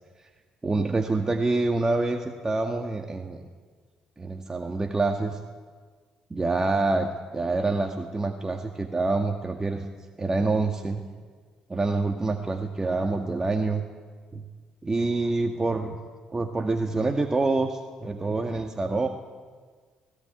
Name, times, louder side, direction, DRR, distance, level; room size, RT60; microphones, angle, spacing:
voice 1, 0.6-3.4 4.2-5.4 6.3-9.9 10.2-11.0 11.7-13.8 14.3-14.4 14.8-16.0 16.3-19.1, right 3 dB, 25° right, 3 dB, 2.0 m, -26 dB
18.0 x 18.0 x 9.4 m, 1.5 s
supercardioid pair, 60°, 2 cm